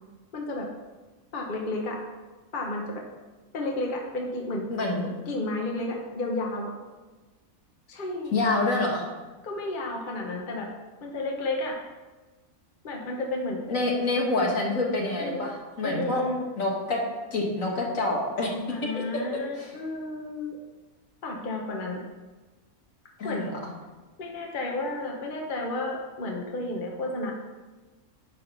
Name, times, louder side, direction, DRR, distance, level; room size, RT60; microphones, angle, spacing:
voice 1, 0.3-0.7 1.3-2.0 2.5-3.0 3.5-4.6 5.0-6.7 7.9-8.4 9.4-10.7 11.0-11.8 12.8-13.6 15.2-15.5 15.8-16.4 18.7-20.6 21.2-22.0 23.2-23.5 24.2-27.3, left 2 dB, 40° left, 0 dB, 1.1 m, -32 dB
voice 2, 4.7-5.0 8.3-9.0 13.7-16.2 16.6-17.0 17.3-18.5 19.6-19.7 23.2-23.5, left 2 dB, 70° left, -1 dB, 1.9 m, -27 dB
10.5 x 3.6 x 5.9 m, 1.2 s
omnidirectional pair, 1.5 m